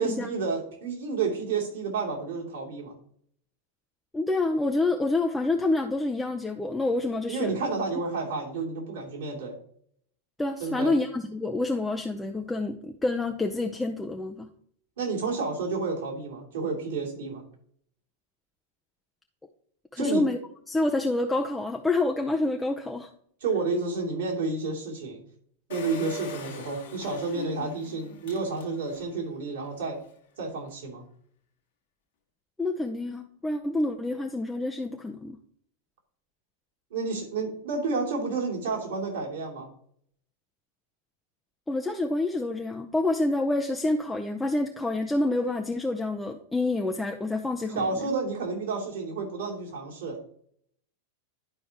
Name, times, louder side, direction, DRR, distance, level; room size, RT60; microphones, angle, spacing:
voice 1, 0.0-2.9 7.3-9.5 10.6-10.9 15.0-17.4 20.0-20.3 23.4-25.2 25.7-30.0 30.4-31.0 36.9-39.7 47.7-50.2, right 4 dB, 60° right, -3 dB, 2.8 m, -30 dB
voice 2, 4.1-7.5 10.4-14.5 19.9-20.4 20.7-23.1 32.6-35.4 41.7-47.9, left 2 dB, 10° left, 3 dB, 0.6 m, -27 dB
Engine, 25.7-29.2 29.6-29.7 29.9-30.0, left 6 dB, 55° left, 1.3 m, -41 dB
11.0 x 5.2 x 2.9 m, 0.63 s
figure-of-eight pair, 90°, 0 cm